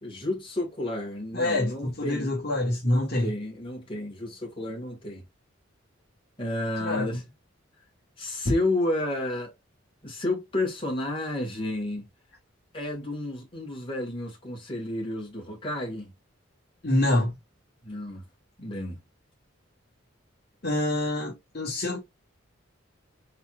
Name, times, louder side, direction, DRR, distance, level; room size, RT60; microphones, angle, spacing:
voice 1, 0.0-2.3 2.8-5.2 6.4-7.2 8.2-9.5 10.0-12.1 12.7-16.1 17.8-18.2 18.6-19.0, left 1 dB, 25° left, 2.0 m, -31 dB
voice 2, 1.3-3.3 6.8-7.0 16.8-17.3 20.6-22.0, left 1 dB, 50° left, 1.3 m, -26 dB
4.6 x 4.0 x 2.4 m
head